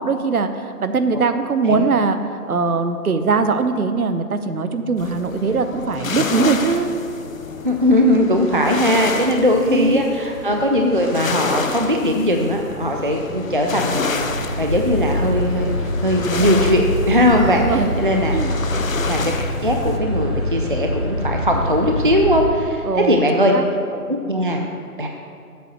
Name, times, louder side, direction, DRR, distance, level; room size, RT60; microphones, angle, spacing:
voice 1, 0.0-2.2 2.5-6.9 9.6-10.0 17.5-17.9 18.3-18.5 22.8-23.6, right 4 dB, 65° right, 9 dB, 0.8 m, -21 dB
sound 1, 5.0-20.0, left 4 dB, 60° left, 0.8 m, -29 dB
voice 2, 7.6-18.5 19.1-19.3 19.6-23.5 24.1-24.6 25.0-25.1, equal, 35° right, 2 dB, 0.4 m, -19 dB
sound 2, 14.2-22.5, left 1 dB, 15° left, 0.9 m, -24 dB
7.8 x 5.7 x 7.7 m, 2.4 s
figure-of-eight pair, 155°, 46 cm